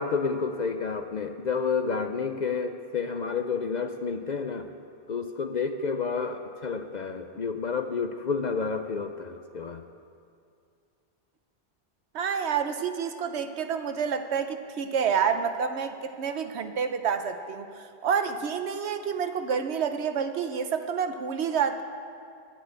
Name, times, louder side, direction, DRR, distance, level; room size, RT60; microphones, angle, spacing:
voice 1, 0.0-4.7 5.1-9.8, left 5 dB, 50° left, 7 dB, 0.6 m, -30 dB
voice 2, 12.1-21.8, right 7 dB, 75° right, 8 dB, 1.0 m, -28 dB
10.0 x 9.9 x 8.9 m, 2.4 s
omnidirectional pair, 1.1 m